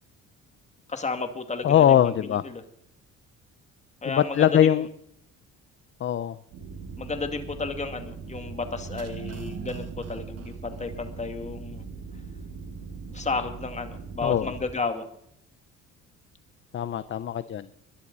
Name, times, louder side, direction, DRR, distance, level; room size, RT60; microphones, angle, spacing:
voice 1, 0.9-2.0 2.3-2.6 4.0-4.8 7.0-11.8 13.1-15.1, left 4 dB, 25° left, 6 dB, 2.4 m, -32 dB
voice 2, 1.6-2.4 4.0-4.9 6.0-6.4 14.2-14.5 16.7-17.7, left 10 dB, 40° left, 14 dB, 0.7 m, -21 dB
sound 1, 6.5-14.6, right 4 dB, 75° right, 7.7 m, -40 dB
sound 2, 8.7-11.5 11.8-11.9, right 9 dB, 55° right, 1.2 m, -41 dB
21.0 x 11.5 x 4.1 m, 0.72 s
cardioid pair, 105°, 30 cm